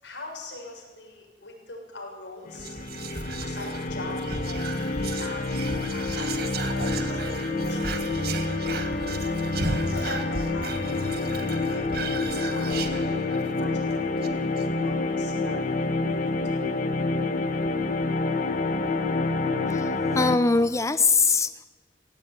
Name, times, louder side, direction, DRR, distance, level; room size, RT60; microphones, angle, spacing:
voice 1, 0.0-4.6 4.9-5.5 5.9-7.3 7.6-8.3 8.6-9.5 9.7-10.8 11.1-12.0 12.3-16.6, left 2 dB, 90° left, 1 dB, 6.9 m, -42 dB
sound 1, 2.5-20.4, left 3 dB, 50° left, 1.3 m, -28 dB
Whispering, 2.5-13.6 13.9-14.0 14.2-14.6, right 3 dB, 60° right, 1.8 m, -35 dB
voice 2, 19.7-21.7, left 4 dB, 15° left, 12 dB, 0.5 m, -22 dB
18.5 x 17.5 x 9.5 m, 1.3 s
head